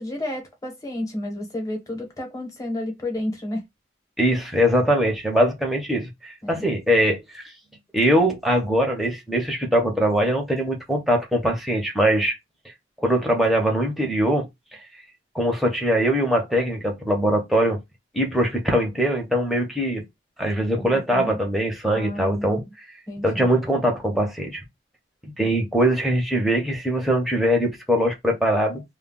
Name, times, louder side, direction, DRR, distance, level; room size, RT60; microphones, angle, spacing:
voice 1, 0.0-3.6 6.4-6.7 20.8-21.4 21.8-22.6 23.1-23.5, left 1 dB, 20° left, 1.0 m, -31 dB
voice 2, 4.2-7.4 7.9-12.3 13.0-14.8 15.3-17.8 18.1-20.0 20.4-22.6 23.2-24.6 25.2-28.8, equal, ahead, 0.7 m, -22 dB
2.2 x 2.1 x 3.7 m
head